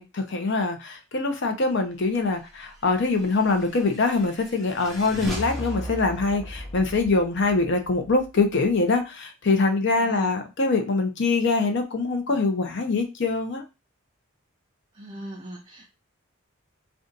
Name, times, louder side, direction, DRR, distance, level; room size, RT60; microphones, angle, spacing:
voice 1, 0.0-13.6, left 3 dB, 55° left, 5 dB, 0.6 m, -24 dB
sound 1, 3.1-8.8, equal, ahead, 0.8 m, -37 dB
voice 2, 10.0-10.4 14.9-15.9, equal, 20° right, 0 dB, 0.4 m, -39 dB
2.6 x 2.3 x 3.8 m, 0.27 s
head